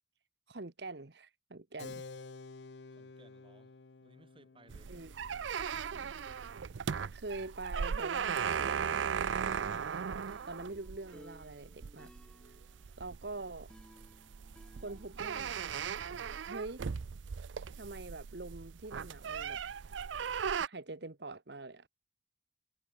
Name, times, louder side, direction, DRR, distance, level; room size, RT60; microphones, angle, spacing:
voice 1, 0.5-2.0 4.9-5.1 5.9-6.1 6.8-10.1 10.5-12.1 12.4-12.6 13.0-13.7 14.8-15.7 16.4-16.9 17.7-19.6 20.6-21.9, right 3 dB, 60° right, 1.2 m, -45 dB
Keyboard (musical), 1.8-7.9, left 3 dB, 70° left, 0.8 m, -52 dB
voice 2, 2.6-5.8, right 1 dB, 30° right, 6.9 m, -64 dB
door open close, 4.7-20.7, right 6 dB, 80° right, 0.5 m, -37 dB
sound 1, 8.6-15.4, equal, 5° left, 7.9 m, -60 dB
head